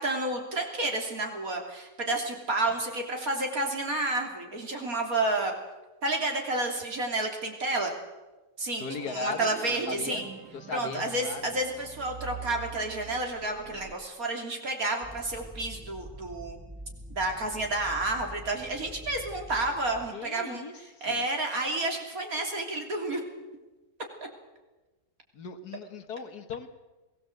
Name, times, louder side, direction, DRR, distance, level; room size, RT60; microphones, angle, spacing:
voice 1, 0.0-5.5 6.0-7.9 8.6-10.2 10.7-16.6 17.1-20.7 21.0-23.2 24.2-24.3, right 2 dB, 65° right, 2 dB, 3.6 m, -30 dB
voice 2, 8.8-11.4 20.1-21.2 25.3-26.7, left 4 dB, 80° left, 8 dB, 2.1 m, -38 dB
sound 1, 8.9-13.9, right 6 dB, 80° right, 1.9 m, -45 dB
sound 2, 15.0-20.1, equal, 5° right, 0.8 m, -45 dB
22.0 x 17.0 x 7.9 m, 1.1 s
omnidirectional pair, 1.7 m